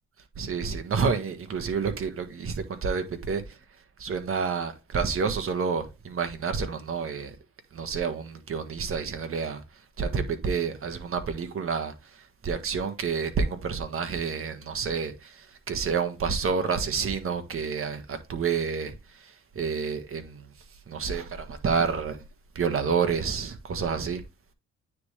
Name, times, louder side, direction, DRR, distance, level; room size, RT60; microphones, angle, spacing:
voice 1, 0.4-3.6 4.0-7.4 7.7-9.6 10.0-20.5 20.9-22.2 22.5-24.2, right 5 dB, 45° right, 1.6 m, -29 dB
9.4 x 3.7 x 3.3 m
cardioid pair, 90°, 30 cm